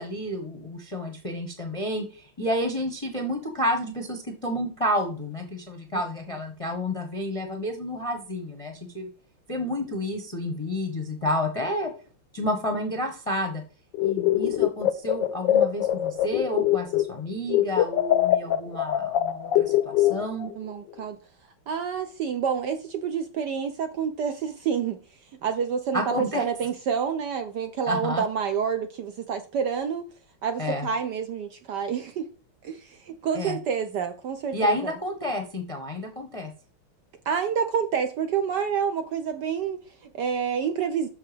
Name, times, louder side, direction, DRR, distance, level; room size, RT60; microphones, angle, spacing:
voice 1, 0.0-9.1 9.5-11.9 12.3-13.6 14.0-20.5 25.9-26.4 27.9-28.2 30.6-30.9 33.3-33.6 34.5-36.5, left 1 dB, 25° left, 0.7 m, -30 dB
sound 1, 13.9-17.2 17.5-20.5, left 12 dB, 75° left, 1.1 m, -23 dB
voice 2, 20.6-21.2 21.7-25.0 25.4-30.1 30.4-32.3 32.6-34.9 37.3-41.1, right 7 dB, 65° right, 1.1 m, -28 dB
6.5 x 5.6 x 5.0 m
omnidirectional pair, 2.4 m